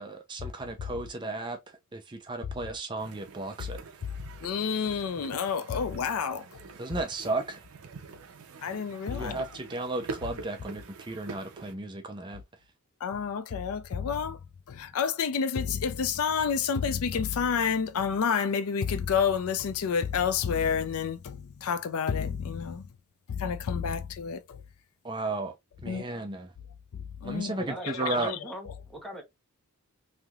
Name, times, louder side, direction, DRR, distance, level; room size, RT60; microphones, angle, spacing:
voice 1, 0.0-3.8 6.8-7.6 9.1-12.4 25.0-26.5 27.2-28.3, right 2 dB, 20° right, 0.5 m, -34 dB
sound 1, 3.0-11.7, right 4 dB, 70° right, 0.5 m, -45 dB
voice 2, 4.4-6.6 8.6-9.4 13.0-14.4 14.7-22.9 23.3-24.6 25.9-26.0 27.2-27.6 27.8-28.1, left 6 dB, 70° left, 0.4 m, -29 dB
voice 3, 27.6-29.2, equal, ahead, 0.8 m, -40 dB
3.2 x 2.7 x 2.3 m
head